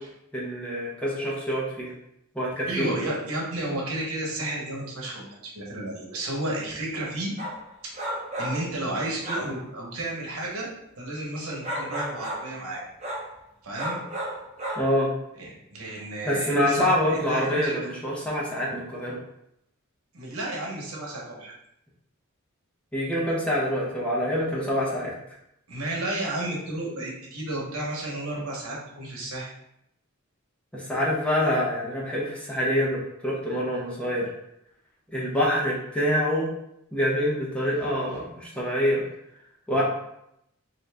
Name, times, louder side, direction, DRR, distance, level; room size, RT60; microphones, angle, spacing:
voice 1, 0.3-1.9 2.3-2.9 14.8-15.1 16.2-19.2 22.9-25.1 30.7-34.3 35.1-36.5 36.9-39.0 39.7-39.8, equal, 5° left, -6 dB, 0.8 m, -26 dB
voice 2, 2.7-7.3 7.8-7.9 8.4-10.7 11.0-12.8 13.6-14.0 15.4-17.8 20.1-21.5 25.7-29.5 39.7-39.8, right 1 dB, 80° right, -3 dB, 1.1 m, -32 dB
sound 1, 7.4-7.6 8.0-8.7 9.2-9.6 11.6-12.5 13.0-13.3 13.7-14.9, right 1 dB, 30° right, 0.8 m, -32 dB
3.9 x 2.7 x 3.4 m, 0.79 s
head